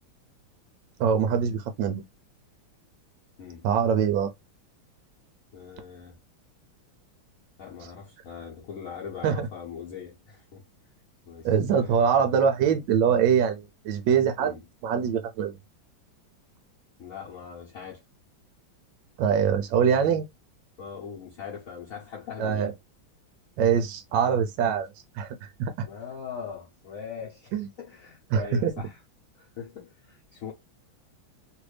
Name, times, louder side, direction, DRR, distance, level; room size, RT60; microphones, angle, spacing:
voice 1, 1.0-2.0 3.6-4.3 9.2-9.5 11.4-14.5 14.8-15.5 19.2-20.2 22.4-22.7 23.6-24.9 25.2-25.7 27.5-27.7 28.3-28.7, right 7 dB, 75° right, 1.1 m, -23 dB
voice 2, 5.5-6.2 7.6-10.6 11.3-12.4 14.4-14.6 17.0-18.0 20.8-22.7 25.8-29.0 29.3-30.5, left 7 dB, 55° left, 1.0 m, -41 dB
3.2 x 2.5 x 3.2 m
omnidirectional pair, 2.3 m